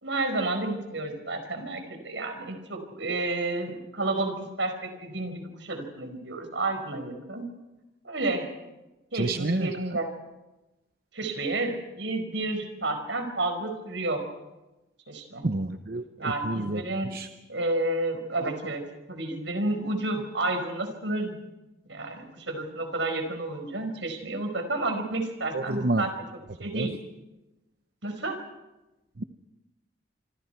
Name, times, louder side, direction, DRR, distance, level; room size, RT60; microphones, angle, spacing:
voice 1, 0.0-7.5 8.0-8.5 9.1-10.1 11.1-14.2 15.1-15.4 16.2-17.1 17.5-18.8 19.1-21.4 21.9-26.1 26.6-26.9 28.0-28.4, right 2 dB, 75° right, 6 dB, 5.0 m, -30 dB
voice 2, 9.1-9.7 15.4-16.0 16.5-16.8 17.1-17.3 25.5-26.0 26.7-26.9, right 2 dB, 50° right, 8 dB, 0.8 m, -28 dB
27.0 x 26.0 x 4.6 m, 1.0 s
head